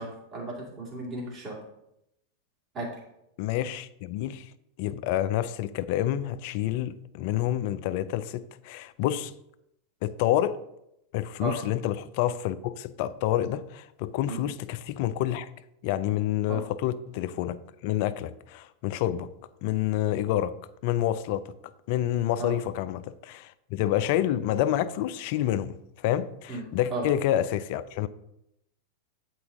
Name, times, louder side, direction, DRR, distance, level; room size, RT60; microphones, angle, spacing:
voice 1, 0.0-1.6 2.7-2.9 11.4-11.6 14.3-14.4 16.5-16.7 22.4-22.6 26.5-26.6 26.9-27.1, right 2 dB, 30° right, 2.3 m, -34 dB
voice 2, 3.4-4.5 4.8-9.3 10.0-10.6 11.1-15.5 15.8-19.3 19.6-20.6 20.8-21.4 21.9-28.1, left 12 dB, 55° left, 0.4 m, -28 dB
7.9 x 4.4 x 3.8 m
hypercardioid pair, 105°, 0 cm